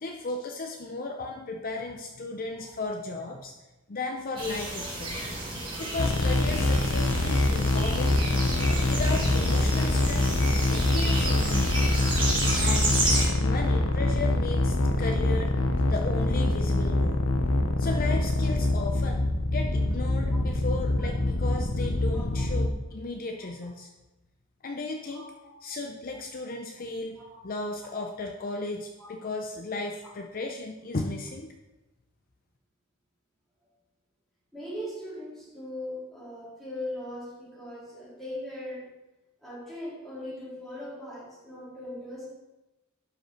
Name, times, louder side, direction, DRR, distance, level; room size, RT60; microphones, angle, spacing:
voice 1, 0.0-3.5 3.9-5.2 5.8-8.2 8.7-10.3 10.7-11.9 12.6-13.0 13.4-15.6 15.9-17.2 17.8-23.9 24.6-25.2 25.6-27.2 27.4-31.5, left 3 dB, 45° left, 3 dB, 0.6 m, -35 dB
sound 1, 4.4-13.3, right 2 dB, 25° right, 3.1 m, -31 dB
sound 2, 6.0-22.7, left 2 dB, 80° left, 0.8 m, -25 dB
voice 2, 34.5-38.9 39.4-42.3, left 1 dB, ahead, -8 dB, 3.7 m, -39 dB
11.5 x 5.3 x 4.5 m, 1.0 s
head